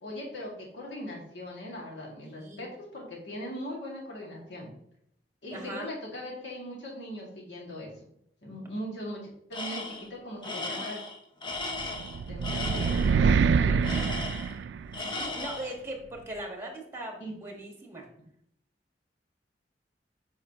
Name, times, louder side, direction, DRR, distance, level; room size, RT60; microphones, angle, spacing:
voice 1, 0.0-4.7 5.4-7.9 8.4-9.2 9.5-11.0 12.3-14.2 17.2-17.3, equal, 85° left, -2 dB, 1.9 m, -40 dB
voice 2, 2.2-2.7 5.5-5.9 15.0-18.1, right 1 dB, 15° right, 1 dB, 1.4 m, -40 dB
Tools, 9.5-10.1 10.4-13.2 13.8-14.6 14.9-15.8, left 2 dB, 25° left, 0.8 m, -36 dB
sound 1, 11.8-15.2, right 5 dB, 80° right, 0.3 m, -25 dB
7.8 x 5.0 x 2.8 m, 0.72 s
head